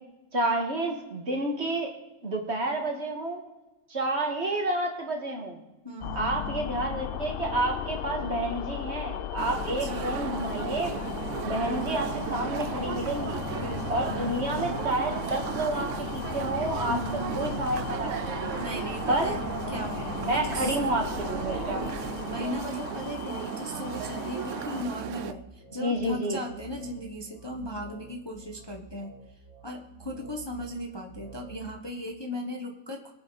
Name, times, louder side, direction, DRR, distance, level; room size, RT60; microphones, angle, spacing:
voice 1, 0.3-1.9 2.2-3.4 3.9-5.6 6.1-10.9 11.4-13.4 13.9-17.0 17.4-18.4 19.1-19.3 20.2-21.8 25.8-26.4, right 1 dB, 45° right, 1 dB, 2.2 m, -29 dB
voice 2, 5.8-6.7 9.8-10.4 13.5-14.6 16.9-17.6 18.6-19.4 19.7-20.8 21.7-33.1, equal, 20° left, 2 dB, 1.1 m, -37 dB
sound 1, 6.0-24.9, left 11 dB, 85° left, 0.5 m, -36 dB
sound 2, 9.4-25.3, right 10 dB, 65° right, 0.8 m, -35 dB
sound 3, 12.1-31.7, right 4 dB, 40° left, 5.9 m, -49 dB
23.0 x 8.7 x 4.0 m, 1.0 s
omnidirectional pair, 1.6 m